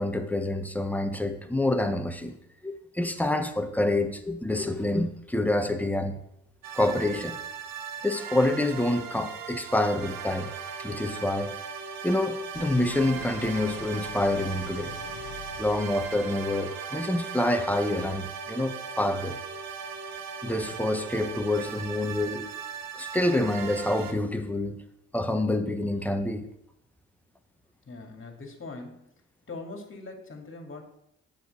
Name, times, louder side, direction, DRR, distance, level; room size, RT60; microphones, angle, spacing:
voice 1, 0.0-2.4 2.6-6.2 6.7-7.4 8.0-10.5 10.8-11.6 12.0-14.9 15.6-19.4 20.4-22.5 23.0-24.8 25.1-26.5, left 1 dB, 5° left, 6 dB, 1.2 m, -27 dB
sound 1, 6.6-24.1, right 6 dB, 65° right, 1.1 m, -38 dB
Idling, 12.5-16.8, left 9 dB, 75° left, 0.9 m, -45 dB
voice 2, 27.9-29.1 29.5-30.8, left 3 dB, 35° left, 3 dB, 2.5 m, -41 dB
7.8 x 5.2 x 6.7 m, 0.77 s
supercardioid pair, 55°, 35 cm